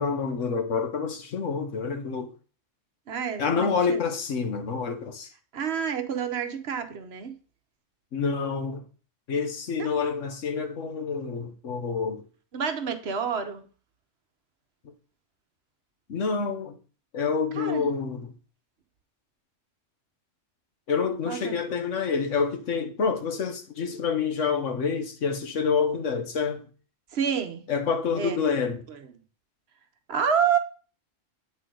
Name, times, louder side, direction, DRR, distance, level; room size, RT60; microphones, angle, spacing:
voice 1, 0.0-2.3 3.4-5.3 8.1-8.9 9.3-12.2 14.8-14.9 16.1-16.8 17.1-18.3 20.9-26.7 27.7-28.8, left 5 dB, 85° left, 1.4 m, -28 dB
voice 2, 3.1-4.0 5.5-7.3 9.8-9.9 12.5-13.6 17.6-17.9 21.3-21.6 27.1-27.6 28.2-28.4 28.9-29.0 30.1-30.6, right 7 dB, 60° right, 1.1 m, -28 dB
8.4 x 4.8 x 3.8 m
omnidirectional pair, 1.2 m